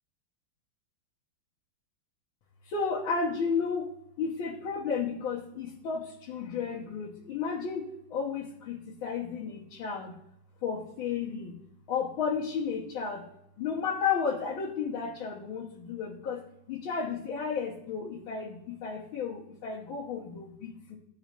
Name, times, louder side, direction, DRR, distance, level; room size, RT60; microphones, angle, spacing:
voice 1, 2.7-3.9 4.2-10.1 10.6-11.6 11.9-13.2 13.6-21.0, left 5 dB, 90° left, -5 dB, 2.0 m, -33 dB
16.0 x 5.5 x 3.0 m, 0.79 s
omnidirectional pair, 2.1 m